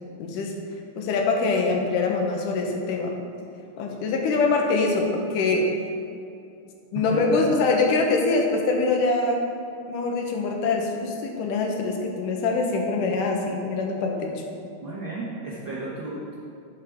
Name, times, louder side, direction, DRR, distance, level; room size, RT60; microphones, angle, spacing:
voice 1, 0.2-0.5 1.0-3.2 3.8-5.7 6.9-9.4 9.9-14.3, left 3 dB, 80° left, 1 dB, 2.5 m, -24 dB
voice 2, 7.1-7.6 14.8-16.3, right 2 dB, 70° right, -7 dB, 1.1 m, -32 dB
11.5 x 6.5 x 3.5 m, 2.6 s
omnidirectional pair, 3.7 m